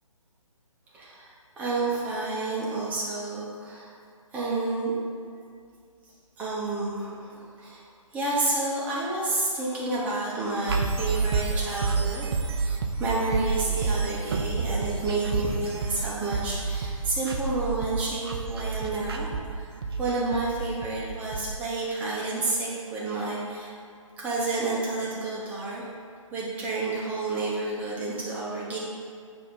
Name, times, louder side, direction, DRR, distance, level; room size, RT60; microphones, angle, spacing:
voice 1, 0.9-3.9 4.3-4.9 6.4-7.9 8.1-19.7 20.0-23.7 24.2-25.8 26.3-28.8, right 2 dB, 10° right, -7 dB, 1.1 m, -30 dB
sound 1, 10.7-21.6, right 4 dB, 45° right, 0.6 m, -29 dB
8.5 x 3.0 x 5.5 m, 2.3 s
figure-of-eight pair, 145°, 17 cm